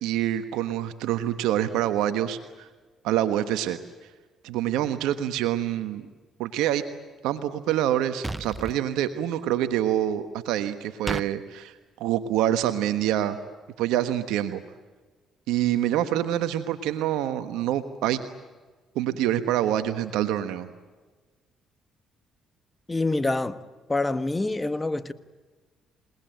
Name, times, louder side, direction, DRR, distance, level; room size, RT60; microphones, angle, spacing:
voice 1, 0.0-2.7 3.0-3.8 4.4-6.0 6.4-6.8 7.2-11.7 12.0-13.4 13.8-14.6 15.5-18.2 18.9-20.7, right 12 dB, 80° right, 1.2 m, -26 dB
sound 1, 8.2-8.8 11.1-11.3, right 2 dB, 15° right, 0.7 m, -32 dB
voice 2, 22.9-23.6 23.9-25.1, left 2 dB, 20° left, 1.5 m, -26 dB
28.0 x 19.5 x 9.2 m
supercardioid pair, 65°, 0 cm